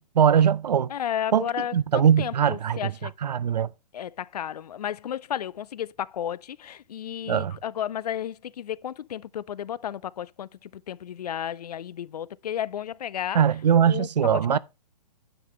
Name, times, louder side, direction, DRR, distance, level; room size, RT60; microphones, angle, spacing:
voice 1, 0.1-0.9 1.3-1.4 1.7-2.9 3.2-3.7 7.3-7.5 13.3-14.6, right 8 dB, 75° right, 0.6 m, -21 dB
voice 2, 0.9-3.1 3.9-13.4 13.9-14.6, left 10 dB, 70° left, 0.5 m, -33 dB
9.8 x 7.4 x 3.2 m
hypercardioid pair, 130°, 21 cm